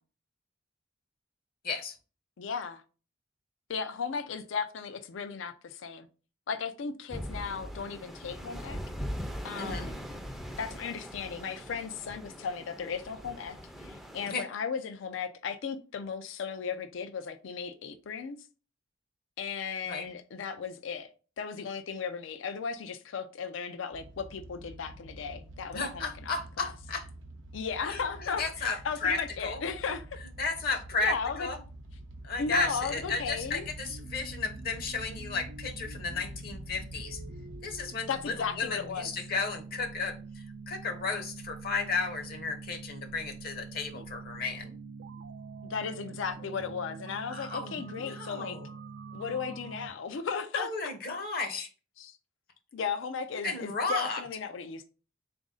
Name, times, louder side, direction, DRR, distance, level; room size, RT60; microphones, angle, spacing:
voice 1, 1.6-1.9 9.6-9.9 14.3-14.4 19.8-20.1 25.7-27.0 27.9-28.8 29.0-29.6 30.4-31.1 31.4-31.6 32.2-37.2 37.6-44.7 47.3-48.7 50.5-51.7 53.4-54.2, left 4 dB, 55° left, 0.7 m, -33 dB
voice 2, 2.4-2.8 3.7-6.1 6.5-8.8 9.4-10.0 10.6-18.4 19.4-26.7 27.5-30.2 31.0-31.5 32.4-33.7 38.1-39.1 45.7-48.6 49.1-50.7 52.0-52.2 52.7-54.8, left 6 dB, 80° left, 0.4 m, -36 dB
sound 1, 7.1-14.3, equal, ahead, 0.4 m, -41 dB
sound 2, 23.9-38.1 38.4-38.8 39.2-39.3 39.6-39.7, right 1 dB, 80° right, 0.7 m, -47 dB
sound 3, 32.4-49.9, right 4 dB, 60° right, 0.4 m, -45 dB
4.0 x 2.5 x 3.6 m
head